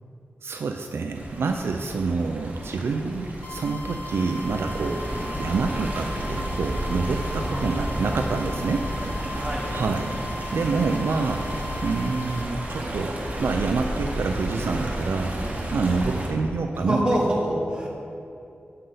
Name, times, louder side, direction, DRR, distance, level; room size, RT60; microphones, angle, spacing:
voice 1, 0.4-5.0 5.4-8.9 9.7-10.1 10.5-11.5 11.8-15.4 15.7-17.0, right 4 dB, 75° right, 4 dB, 0.3 m, -27 dB
Stream, 1.1-16.3, right 1 dB, 40° right, 1.0 m, -32 dB
sound 1, 3.4-12.4, left 2 dB, 45° left, 0.6 m, -38 dB
voice 2, 7.4-8.1 9.4-9.7 16.7-17.9, right 1 dB, 20° right, -3 dB, 1.3 m, -26 dB
7.8 x 5.4 x 3.8 m, 2.6 s
wide cardioid pair, 105°, 4 cm